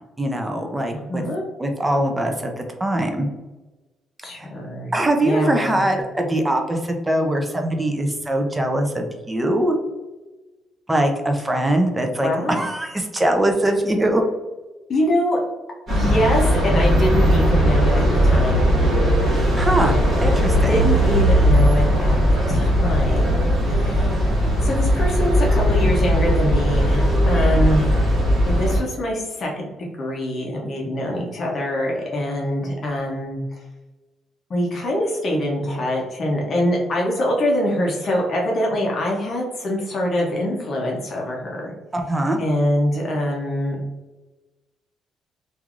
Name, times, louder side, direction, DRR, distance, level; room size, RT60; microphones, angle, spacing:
voice 1, 0.2-1.2 1.6-3.3 4.4-4.5 4.9-9.8 10.9-14.2 19.6-20.0 20.2-20.9 41.9-42.4, right 1 dB, 10° right, 4 dB, 0.4 m, -22 dB
voice 2, 0.9-1.4 4.2-4.9 5.2-5.9 12.2-12.6 14.9-15.4 15.9-18.7 20.7-22.2 22.5-24.3 24.6-27.9 28.5-33.6 34.5-41.7 42.4-43.8, equal, 40° left, -1 dB, 0.6 m, -24 dB
sound 1, 15.9-28.8, equal, 35° right, 1.4 m, -18 dB
3.1 x 2.4 x 2.4 m, 1.2 s
cardioid pair, 155°, 0 cm